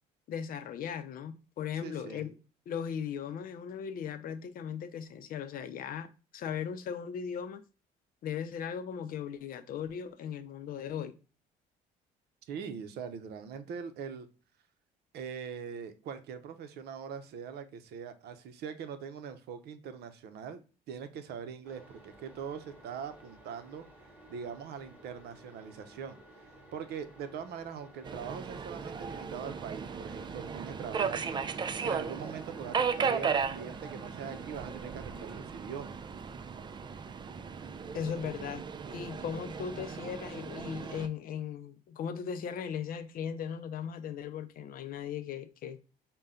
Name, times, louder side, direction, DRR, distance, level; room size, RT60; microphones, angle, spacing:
voice 1, 0.3-2.3 2.7-7.6 8.2-11.1 37.9-45.8, left 8 dB, 60° left, 0.5 m, -38 dB
voice 2, 1.8-2.3 12.5-14.3 15.1-20.6 20.9-23.8 24.3-26.2 26.7-31.4 31.8-36.0, right 7 dB, 70° right, 0.7 m, -42 dB
sound 1, 21.6-35.4, right 1 dB, 10° right, 1.8 m, -55 dB
Subway metro underground, 28.0-41.1, right 6 dB, 25° right, 0.4 m, -36 dB
5.5 x 2.2 x 3.7 m
cardioid pair, 110°, 17 cm